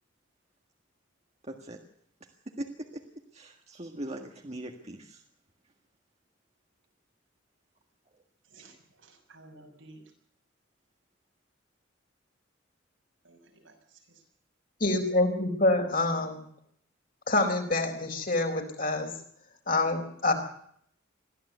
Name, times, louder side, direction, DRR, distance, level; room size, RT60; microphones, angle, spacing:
voice 1, 1.5-1.8 2.6-2.7 2.9-3.0 3.3-5.2 8.6-8.7, right 1 dB, 35° right, 3 dB, 1.8 m, -40 dB
voice 2, 8.5-10.0 13.2-13.7 14.1-14.2, right 2 dB, 90° right, 2 dB, 6.8 m, -54 dB
voice 3, 14.8-16.4 17.3-19.1 19.7-20.3, left 2 dB, 45° left, 4 dB, 4.3 m, -26 dB
22.0 x 14.5 x 8.2 m, 0.66 s
head